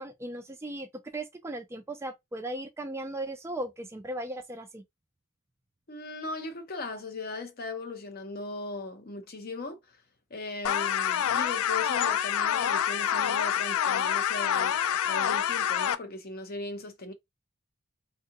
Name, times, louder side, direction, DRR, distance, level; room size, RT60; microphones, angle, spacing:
voice 1, 0.0-4.8, right 1 dB, 15° right, 0.4 m, -37 dB
voice 2, 5.9-9.8 10.3-17.1, left 3 dB, 45° left, 0.7 m, -38 dB
sound 1, 10.6-15.9, left 9 dB, 90° left, 0.4 m, -27 dB
3.5 x 2.2 x 2.9 m
head